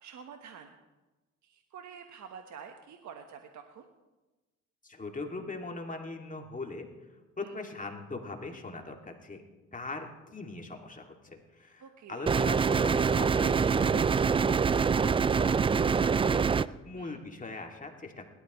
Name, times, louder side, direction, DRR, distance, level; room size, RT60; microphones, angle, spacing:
voice 1, 0.0-0.7 1.4-3.9 7.4-7.5 11.8-12.3 16.9-17.2, right 7 dB, 60° right, 5 dB, 1.3 m, -48 dB
voice 2, 4.8-6.9 7.4-9.4 9.7-18.2, left 3 dB, 25° left, 2 dB, 2.4 m, -41 dB
sound 1, 12.3-16.7, right 6 dB, 15° right, 0.3 m, -25 dB
21.0 x 12.5 x 3.1 m, 1.1 s
supercardioid pair, 70°, 32 cm